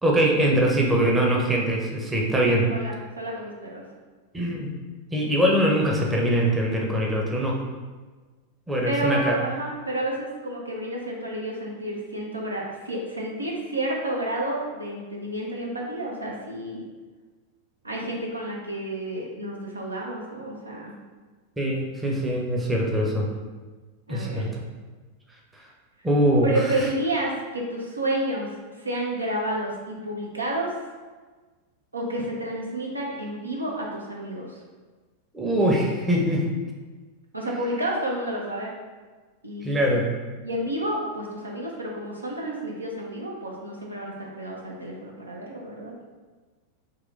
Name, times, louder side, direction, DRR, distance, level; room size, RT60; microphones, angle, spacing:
voice 1, 0.0-2.7 4.3-4.7 5.1-7.6 8.7-9.3 21.6-23.3 24.1-24.6 26.0-26.9 35.3-36.5 39.6-40.1, right 1 dB, 10° right, -2 dB, 0.7 m, -22 dB
voice 2, 2.7-3.8 8.8-16.8 17.8-20.9 24.1-24.5 26.4-28.5 28.8-30.7 31.9-34.6 37.3-38.8 39.4-40.0 40.4-45.9, right 1 dB, 80° right, -2 dB, 0.7 m, -30 dB
3.8 x 2.9 x 3.2 m, 1.3 s
figure-of-eight pair, 90°, 0 cm